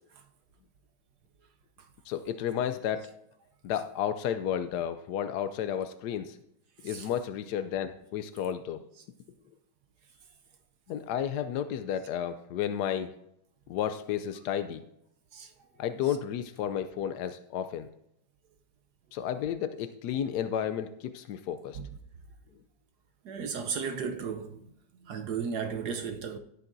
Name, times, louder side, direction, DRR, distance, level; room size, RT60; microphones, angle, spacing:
voice 1, 2.1-3.1 3.6-6.4 6.8-8.8 10.9-13.1 13.7-14.8 15.8-17.9 19.1-21.8, left 9 dB, 80° left, 0.9 m, -32 dB
voice 2, 23.2-24.7 25.0-26.4, right 6 dB, 65° right, 1.0 m, -35 dB
16.5 x 8.4 x 2.6 m
omnidirectional pair, 2.3 m